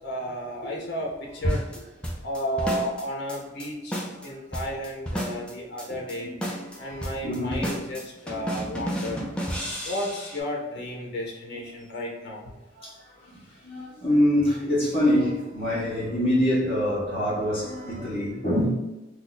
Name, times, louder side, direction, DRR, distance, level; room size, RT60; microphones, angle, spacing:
voice 1, 0.0-1.6 2.2-6.3 6.8-9.2 9.8-12.4, equal, 60° left, -1 dB, 0.7 m, -33 dB
sound 1, 1.5-3.0 3.3-3.7 3.9-4.3 4.5-5.5 5.8-6.1 6.4-10.4, equal, 5° left, 0.5 m, -32 dB
voice 2, 5.9-7.7 9.3-9.8 11.5-11.6 12.8-13.0 13.2-18.7, left 1 dB, 30° left, -12 dB, 1.0 m, -26 dB
2.6 x 2.3 x 4.0 m, 1.0 s
head